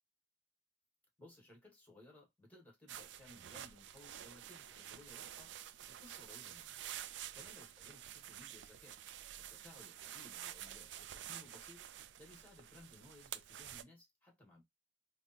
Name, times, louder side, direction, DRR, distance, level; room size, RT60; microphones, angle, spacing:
voice 1, 1.2-5.6 5.9-6.9 7.3-9.0 9.4-11.9 12.2-14.6, left 2 dB, 10° left, 1.4 m, -60 dB
sound 1, 2.9-13.8, right 11 dB, 75° right, 0.3 m, -50 dB
3.3 x 2.1 x 2.7 m
head